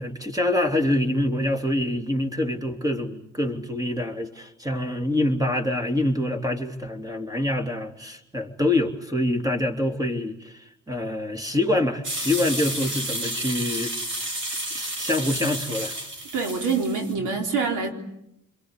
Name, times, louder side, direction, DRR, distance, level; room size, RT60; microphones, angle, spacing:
voice 1, 0.0-13.9 14.7-15.9, left 1 dB, 10° right, 4 dB, 3.2 m, -25 dB
sound 1, 12.0-17.1, right 1 dB, 40° right, 5.1 m, -31 dB
voice 2, 16.3-17.9, right 4 dB, 85° right, 3 dB, 4.0 m, -25 dB
27.0 x 22.5 x 8.4 m, 0.82 s
cardioid pair, 90°, 30 cm